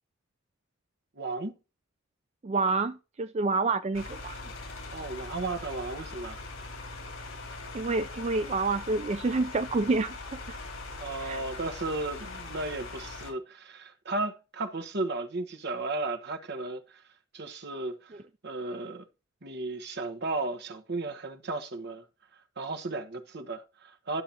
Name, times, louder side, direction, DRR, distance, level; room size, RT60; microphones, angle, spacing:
voice 1, 1.1-1.6 4.9-6.4 11.0-17.0 17.3-18.2 18.4-19.0 19.4-22.0 22.6-24.2, right 2 dB, 55° right, 1.1 m, -34 dB
voice 2, 2.4-4.5 7.7-10.6 11.2-11.4 18.1-18.2, right 3 dB, 30° right, 0.4 m, -28 dB
sound 1, 3.9-13.3, left 3 dB, 70° left, 4.2 m, -41 dB
12.0 x 6.7 x 2.9 m
head